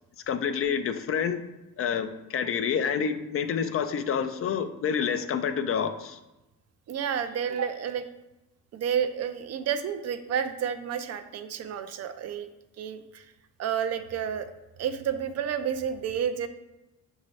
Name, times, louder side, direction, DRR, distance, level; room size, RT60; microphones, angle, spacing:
voice 1, 0.3-1.4 1.8-6.2, left 7 dB, 50° left, 9 dB, 0.4 m, -28 dB
voice 2, 6.9-8.1 8.7-12.5 12.8-13.2 13.6-14.5 14.8-16.5, right 8 dB, 55° right, 9 dB, 0.5 m, -30 dB
6.0 x 2.7 x 3.1 m, 1.0 s
cardioid pair, 90°, 30 cm